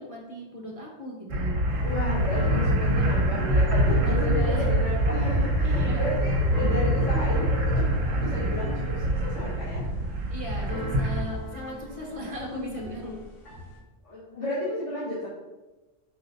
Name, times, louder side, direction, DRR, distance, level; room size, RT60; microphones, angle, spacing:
voice 1, 0.0-1.5 4.0-4.7 5.6-6.2 10.3-13.2, left 1 dB, 25° right, -2 dB, 1.4 m, -37 dB
sound 1, 1.3-11.2, right 1 dB, 90° right, 1.3 m, -25 dB
Keyboard (musical), 1.7-13.8, equal, 85° left, 2.8 m, -42 dB
voice 2, 1.8-9.9 14.0-15.3, left 1 dB, 70° left, -8 dB, 1.8 m, -32 dB
5.4 x 3.9 x 5.4 m, 1.1 s
omnidirectional pair, 1.3 m